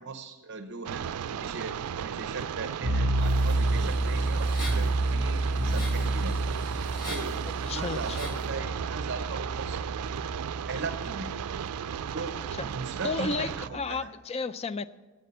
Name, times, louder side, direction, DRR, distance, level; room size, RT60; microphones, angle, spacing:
voice 1, 0.0-6.4 7.1-9.9 10.7-11.4 12.1-14.1, right 3 dB, 50° right, 7 dB, 0.8 m, -39 dB
sound 1, 0.8-13.7, right 8 dB, 90° right, 0.4 m, -35 dB
sound 2, 2.8-14.0, right 2 dB, 20° right, 1.5 m, -30 dB
sound 3, 3.2-8.5, left 1 dB, 45° left, 4.1 m, -43 dB
voice 2, 7.7-8.4 12.5-12.7 13.0-14.9, left 3 dB, 30° left, 15 dB, 0.3 m, -33 dB
12.0 x 8.6 x 7.0 m, 1.3 s
head